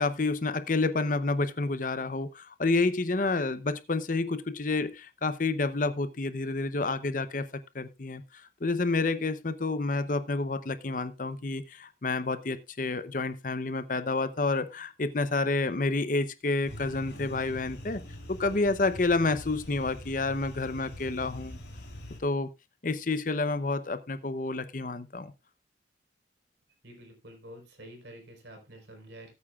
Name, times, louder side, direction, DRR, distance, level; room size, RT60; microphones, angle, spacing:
voice 1, 0.0-7.5 7.7-8.2 8.6-18.0 18.3-21.6 22.2-22.5 22.8-25.3, left 3 dB, 45° left, 0.7 m, -29 dB
sound 1, 16.6-22.2, left 1 dB, 65° left, 3.4 m, -44 dB
voice 2, 26.8-29.3, right 1 dB, 70° right, 4.2 m, -48 dB
18.5 x 8.7 x 2.4 m
head